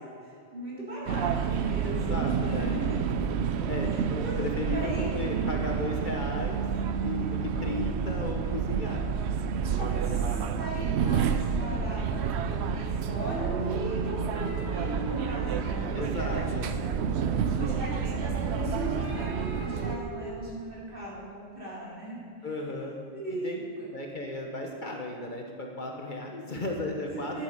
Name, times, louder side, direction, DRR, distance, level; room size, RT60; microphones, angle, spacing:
voice 1, 0.2-3.0 3.8-4.4 4.7-5.1 9.6-16.6 17.5-22.1 22.4-22.5 23.1-23.9 27.3-27.4, right 1 dB, 50° right, -7 dB, 3.9 m, -39 dB
sound 1, 1.1-20.0, right 6 dB, 70° right, 0.9 m, -29 dB
voice 2, 1.8-2.7 3.7-4.0 4.4-6.6 7.0-9.0 15.9-16.7 17.6-17.8 22.4-22.9 23.3-23.6 23.9-27.4, left 2 dB, 45° left, 1 dB, 1.3 m, -35 dB
sound 2, 13.2-17.4 18.4-20.4, right 1 dB, 75° left, 2.7 m, -38 dB
10.5 x 9.0 x 6.7 m, 2.3 s
omnidirectional pair, 1.2 m